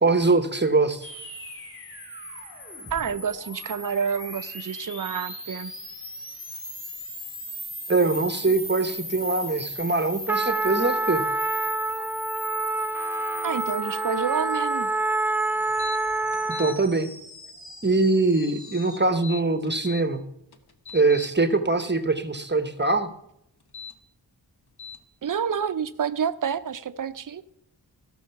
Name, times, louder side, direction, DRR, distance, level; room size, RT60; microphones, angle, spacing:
voice 1, 0.0-1.1 7.9-11.2 16.6-17.1 17.8-20.2 20.9-23.1, right 3 dB, 25° right, 10 dB, 0.9 m, -23 dB
sound 1, 1.0-19.0, equal, 30° left, 2.9 m, -39 dB
voice 2, 2.9-5.7 13.4-14.9 25.2-27.4, right 7 dB, 50° right, 14 dB, 0.6 m, -28 dB
Trumpet, 10.3-16.8, right 2 dB, 5° right, 0.4 m, -27 dB
sound 2, 15.8-16.0 16.3-16.7 19.1-20.0 20.5-21.3 23.6-23.9 24.8-25.0, left 6 dB, 65° left, 1.1 m, -39 dB
16.0 x 6.3 x 5.8 m, 0.78 s
wide cardioid pair, 85°, 41 cm